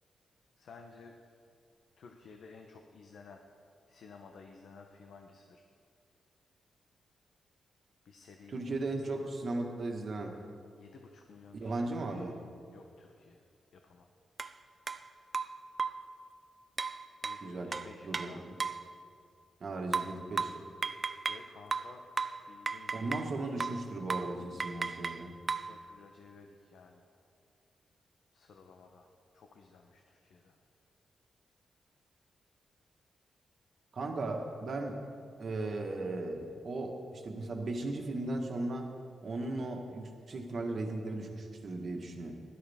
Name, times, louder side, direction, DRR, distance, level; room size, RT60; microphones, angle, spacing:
voice 1, 0.6-1.3 2.0-3.4 3.9-5.6 8.0-9.3 10.7-12.3 12.7-13.4 13.7-14.1 17.2-18.5 21.3-22.0 22.5-23.1 23.4-23.6 25.7-27.0 28.3-29.1 29.3-30.6, left 4 dB, 75° left, 3 dB, 0.9 m, -54 dB
voice 2, 8.5-10.4 11.5-12.4 17.4-17.8 18.0-18.5 19.6-20.5 22.9-25.4 33.9-35.0 35.4-38.9 39.2-42.3, right 2 dB, 50° right, 2 dB, 1.6 m, -37 dB
sound 1, 14.4-14.5 14.9-15.0 15.3-16.1 16.8-18.9 19.9-21.5 21.7-23.3 23.6-23.8 24.1-24.3 24.6-25.7, right 4 dB, 35° right, 0.4 m, -35 dB
16.0 x 12.0 x 3.6 m, 2.4 s
cardioid pair, 110°, 0 cm